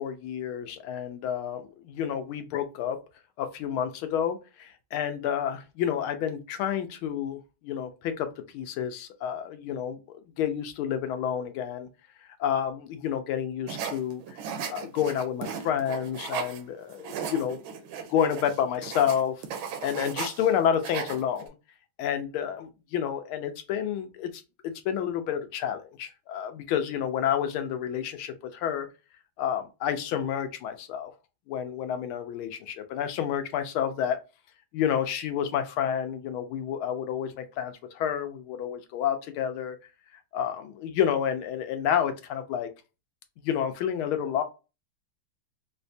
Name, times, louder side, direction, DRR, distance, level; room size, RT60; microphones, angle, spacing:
voice 1, 0.0-3.0 3.4-8.3 8.5-11.9 12.4-14.4 14.7-17.6 18.1-19.4 19.8-21.5 22.0-24.3 24.6-28.9 29.4-31.1 31.5-34.2 34.7-39.8 40.3-42.7 43.4-44.4, left 9 dB, 80° left, 1.5 m, -29 dB
sound 1, 13.7-16.6 16.9-20.5 20.7-21.5, right 7 dB, 80° right, 1.5 m, -36 dB
4.5 x 2.2 x 2.6 m
omnidirectional pair, 2.3 m